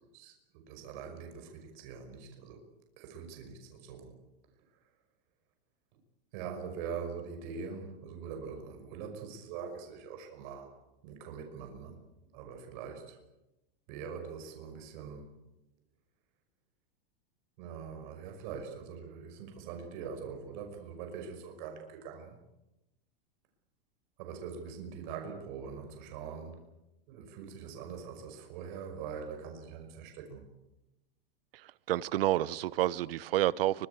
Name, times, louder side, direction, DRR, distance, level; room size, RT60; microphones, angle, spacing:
voice 1, 0.0-2.6 3.0-4.2 4.7-4.9 6.3-10.7 11.0-12.0 12.3-13.2 13.9-15.3 17.6-22.4 24.2-26.6 27.1-30.5, right 6 dB, 55° right, 5.7 m, -43 dB
voice 2, 31.5-33.9, right 14 dB, 75° right, 1.1 m, -29 dB
24.5 x 21.5 x 8.3 m
supercardioid pair, 150°, 29 cm